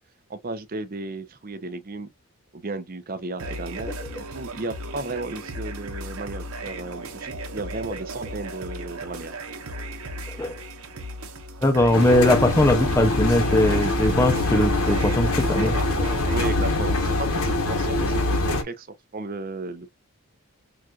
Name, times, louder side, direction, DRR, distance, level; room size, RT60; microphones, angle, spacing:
voice 1, 0.3-2.1 2.5-3.9 4.2-9.3 16.3-19.9, right 2 dB, 40° right, 0.7 m, -34 dB
sound 1, 3.4-16.5, right 1 dB, 80° right, 1.0 m, -36 dB
voice 2, 11.6-15.8, left 1 dB, 15° left, 0.6 m, -20 dB
Engine, 11.9-18.6, left 2 dB, 75° left, 1.1 m, -24 dB
6.0 x 2.5 x 2.4 m
head